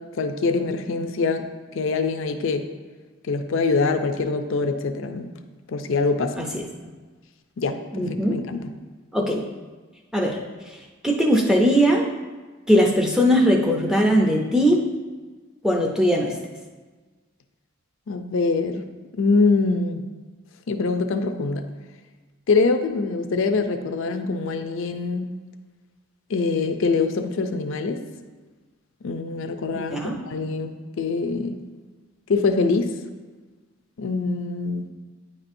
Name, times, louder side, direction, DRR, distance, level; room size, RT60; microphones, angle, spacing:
voice 1, 0.1-1.5 1.7-2.7 3.3-5.3 5.7-6.4 7.6-8.6 18.1-18.8 19.1-20.0 20.7-21.7 22.5-25.3 26.3-28.0 29.0-31.6 32.3-32.9 34.0-34.9, left 4 dB, 65° left, 7 dB, 0.4 m, -24 dB
voice 2, 7.9-8.4 9.1-9.4 10.1-10.4 10.7-12.0 12.7-14.8 15.6-16.4 29.7-30.2, equal, 5° right, -1 dB, 0.5 m, -20 dB
9.3 x 4.2 x 2.6 m, 1.3 s
head